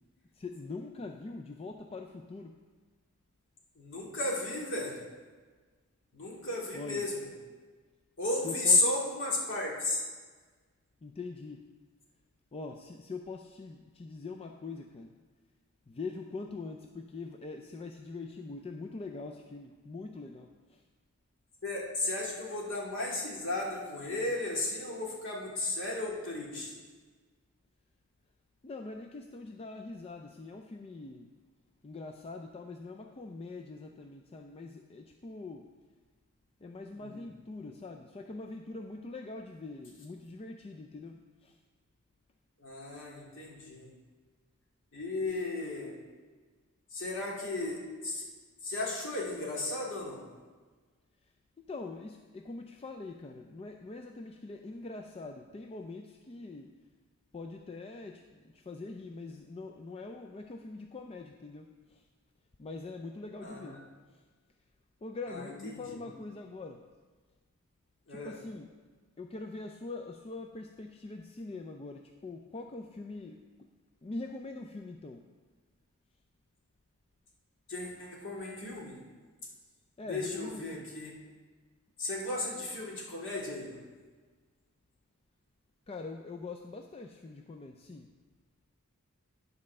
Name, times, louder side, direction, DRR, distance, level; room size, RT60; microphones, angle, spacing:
voice 1, 0.3-2.6 6.7-7.1 8.4-8.8 11.0-11.7 12.5-15.1 15.9-20.8 28.6-31.3 31.8-35.7 36.6-41.6 51.7-56.7 57.3-62.0 62.6-63.8 64.1-64.2 65.0-66.8 68.1-68.7 69.2-73.7 74.0-75.3 80.0-80.9 85.9-88.1, left 3 dB, 25° left, 4 dB, 0.4 m, -43 dB
voice 2, 3.8-5.0 6.1-7.3 8.2-10.0 21.6-26.8 37.0-37.2 42.6-43.9 44.9-45.9 46.9-48.3 48.6-50.2 63.4-63.8 65.3-66.1 68.1-68.4 77.7-79.0 80.1-81.1 82.0-83.8, left 2 dB, 60° left, -3 dB, 2.2 m, -34 dB
11.0 x 4.2 x 6.4 m, 1.4 s
head